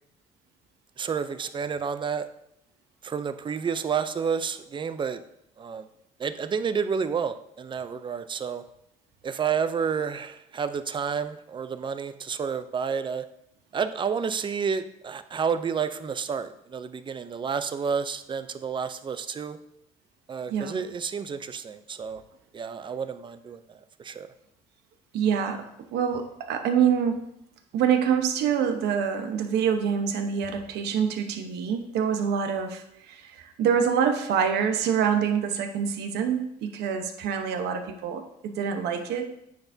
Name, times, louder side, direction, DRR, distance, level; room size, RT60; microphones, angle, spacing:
voice 1, 1.0-2.3 3.0-5.2 5.6-5.9 6.2-8.6 9.2-13.2 13.7-19.6 20.3-22.2 22.5-24.3, right 6 dB, 30° right, 11 dB, 0.5 m, -30 dB
voice 2, 25.1-27.2 27.7-39.3, right 7 dB, 80° right, 6 dB, 1.0 m, -26 dB
9.4 x 7.0 x 2.7 m, 0.77 s
cardioid pair, 110°, 17 cm